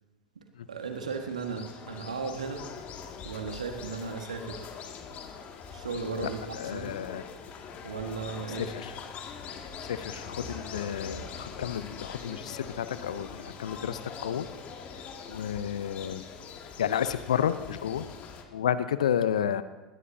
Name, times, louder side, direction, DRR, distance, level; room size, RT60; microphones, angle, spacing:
voice 1, 0.3-2.7 3.2-4.7 5.7-6.9 7.8-8.7, right 5 dB, 80° right, 4 dB, 1.6 m, -36 dB
sound 1, 0.8-18.4, left 5 dB, 40° left, 2.2 m, -43 dB
voice 2, 6.6-7.2 8.8-8.9 9.8-14.5 15.3-16.2 16.8-18.1 18.5-19.6, left 9 dB, 70° left, 13 dB, 0.7 m, -31 dB
21.5 x 19.5 x 2.8 m, 1.1 s
figure-of-eight pair, 80°, 4 cm